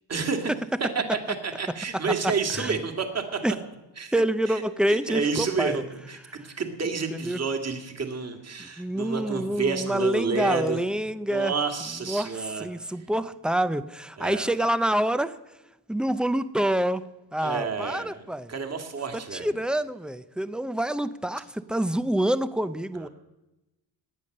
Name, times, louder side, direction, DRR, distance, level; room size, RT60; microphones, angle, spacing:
voice 1, 0.1-0.5 0.9-3.4 4.0-4.1 4.5-4.6 4.9-10.8 11.3-12.7 14.2-14.5 17.4-19.5 22.9-23.1, right 5 dB, 35° right, 5 dB, 2.0 m, -30 dB
voice 2, 2.2-2.8 3.4-3.5 4.1-5.8 7.1-7.4 8.6-11.5 12.1-15.4 15.9-17.1 17.3-18.5 19.3-23.1, right 1 dB, ahead, 14 dB, 0.4 m, -27 dB
19.5 x 8.4 x 6.5 m, 0.99 s
cardioid pair, 115°, 45 cm